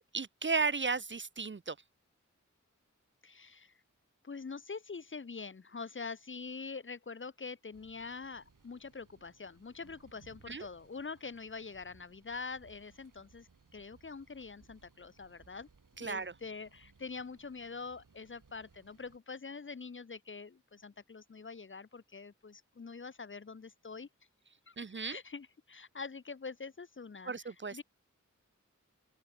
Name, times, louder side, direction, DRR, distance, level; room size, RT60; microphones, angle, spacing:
voice 1, 0.0-1.7 10.5-10.7 16.0-16.3 24.8-25.2 27.3-27.8, right 4 dB, 40° right, 0.6 m, -34 dB
voice 2, 3.2-3.7 4.2-15.7 16.0-24.1 24.7-24.8 25.0-27.8, left 4 dB, 40° left, 0.7 m, -45 dB
sound 1, 7.7-19.2, right 4 dB, 85° right, 4.0 m, -64 dB
open air
wide cardioid pair, 60°, 31 cm